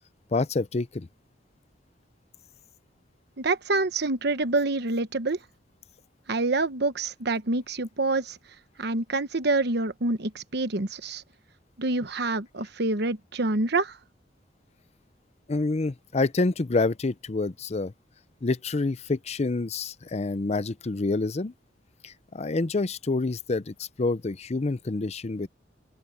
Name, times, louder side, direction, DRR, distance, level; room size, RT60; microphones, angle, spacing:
voice 1, 0.3-1.1 15.5-17.9 18.4-21.5 22.0-25.5, left 3 dB, 35° left, 0.6 m, -27 dB
voice 2, 3.4-5.4 6.3-8.4 8.8-11.2 11.8-14.0, right 2 dB, 60° right, 1.1 m, -27 dB
open air
head